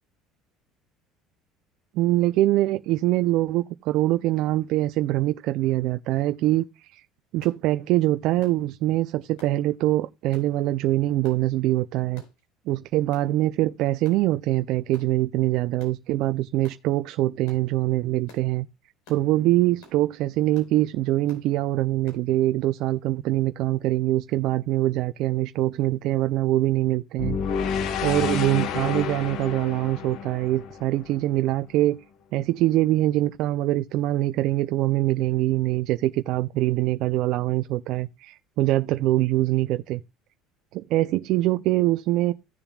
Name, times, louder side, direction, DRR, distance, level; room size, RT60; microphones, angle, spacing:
voice 1, 1.9-7.0 7.3-12.2 12.7-18.7 19.1-27.4 28.0-32.0 32.3-40.0 40.7-42.3, right 15 dB, 65° right, 0.4 m, -23 dB
sound 1, 7.4-7.6 8.4-8.6 9.4-9.6 10.3-10.5 11.2-11.4 12.1-12.4 13.1-13.3 14.0-14.2 14.9-15.1 15.8-16.0 16.6-16.8 17.5-17.6 18.3-18.5 19.0-19.3 19.8-20.0 20.5-20.7 21.3-21.5 22.1-22.2, left 3 dB, 90° left, 4.5 m, -51 dB
sound 2, 27.2-31.4, left 6 dB, 55° left, 1.0 m, -29 dB
16.0 x 7.0 x 2.3 m
cardioid pair, 125°, 0 cm